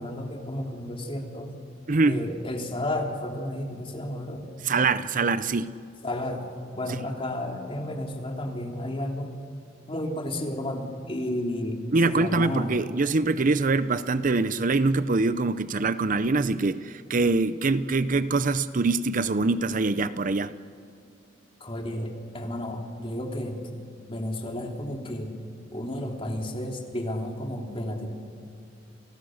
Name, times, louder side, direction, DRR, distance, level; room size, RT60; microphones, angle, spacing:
voice 1, 0.0-1.5 2.0-4.4 5.1-5.3 6.0-6.5 6.7-9.3 9.9-12.8 21.6-23.6 24.1-25.3 25.7-28.1, left 1 dB, 30° left, 2 dB, 3.2 m, -32 dB
voice 2, 1.9-2.2 4.6-5.7 11.9-20.6, right 3 dB, 45° right, 13 dB, 0.6 m, -24 dB
30.0 x 29.5 x 6.5 m, 2.3 s
head